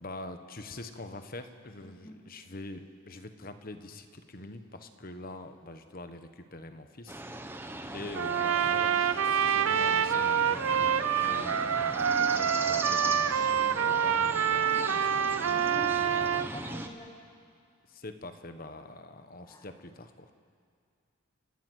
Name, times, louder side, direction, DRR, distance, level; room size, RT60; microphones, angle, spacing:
voice 1, 0.0-7.4 7.9-15.7 17.9-20.3, left 2 dB, 45° left, 8 dB, 1.2 m, -44 dB
voice 2, 1.8-2.1 13.0-14.0 15.5-17.1 19.4-19.7, left 1 dB, 20° left, 0 dB, 2.1 m, -46 dB
sound 1, 7.1-16.9, right 2 dB, 10° right, 0.9 m, -39 dB
Trumpet, 8.1-16.5, right 8 dB, 85° right, 0.7 m, -27 dB
30.0 x 12.0 x 8.1 m, 2.2 s
head